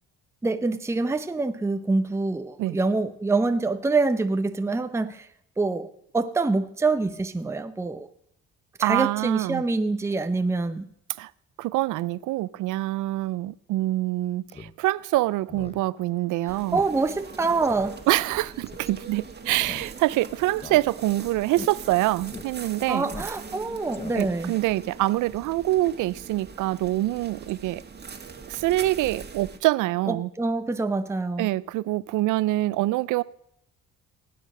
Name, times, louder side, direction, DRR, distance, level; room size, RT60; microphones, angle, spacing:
voice 1, 0.4-5.3 5.6-8.1 8.8-10.9 16.7-18.0 22.9-24.5 30.1-31.5, right 3 dB, 10° right, 0.6 m, -25 dB
voice 2, 8.8-9.6 11.2-11.3 11.6-16.8 18.1-23.0 24.1-27.8 28.5-30.3 31.4-33.2, right 17 dB, 85° right, 0.5 m, -25 dB
Speech synthesizer, 14.5-14.7 15.1-15.2 15.5-15.8 16.1-16.2 16.7-16.9 17.2-17.3 17.6-17.9 18.7-18.9 19.6-20.2 20.6-21.2 21.5-21.7 22.3-22.5 23.1-23.6 23.9-24.4, left 4 dB, 20° left, 0.8 m, -41 dB
sound 1, 16.5-29.6, right 5 dB, 35° right, 1.6 m, -42 dB
17.5 x 8.7 x 5.4 m
cardioid pair, 90°, 30 cm